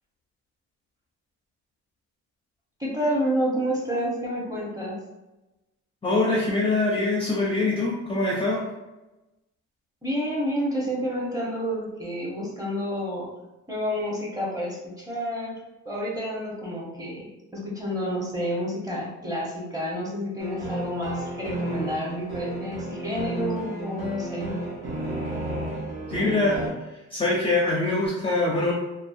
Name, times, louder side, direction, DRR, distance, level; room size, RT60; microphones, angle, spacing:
voice 1, 2.8-5.0 10.0-13.3 13.7-15.6 15.8-24.6, equal, 10° right, -5 dB, 0.9 m, -29 dB
voice 2, 6.0-8.6 26.1-26.6 27.1-28.7, left 2 dB, 20° left, -4 dB, 0.5 m, -23 dB
sound 1, 20.4-26.7, right 1 dB, 55° right, 0.8 m, -32 dB
2.6 x 2.0 x 2.5 m, 1.0 s
cardioid pair, 90°, 30 cm